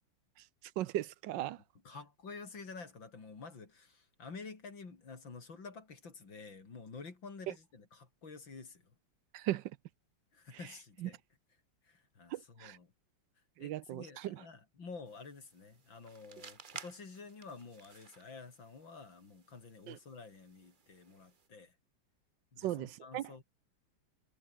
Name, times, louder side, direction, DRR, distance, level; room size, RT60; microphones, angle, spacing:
voice 1, 0.8-1.6 9.3-9.6 11.0-11.1 12.3-12.8 13.6-14.4 19.9-20.0 22.6-23.3, right 14 dB, 75° right, 1.4 m, -37 dB
voice 2, 1.8-8.8 10.3-11.2 11.8-12.9 13.6-21.7 22.5-23.4, left 4 dB, 90° left, 4.5 m, -50 dB
sound 1, 15.1-21.5, right 5 dB, 30° right, 1.1 m, -55 dB
omnidirectional pair, 2.0 m